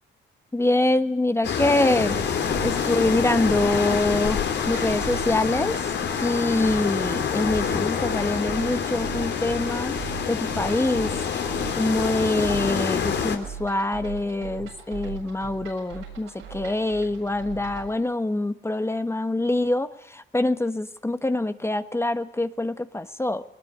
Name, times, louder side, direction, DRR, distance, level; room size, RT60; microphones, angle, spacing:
voice 1, 0.5-2.4 2.6-4.4 4.7-5.8 6.2-9.9 10.3-11.1 11.8-23.4, left 2 dB, 15° left, 10 dB, 1.3 m, -25 dB
sound 1, 1.4-13.4, left 7 dB, 60° left, 3.0 m, -27 dB
sound 2, 2.0-17.9, right 7 dB, 90° right, 7.4 m, -40 dB
21.0 x 20.5 x 9.9 m, 0.74 s
cardioid pair, 90°, 20 cm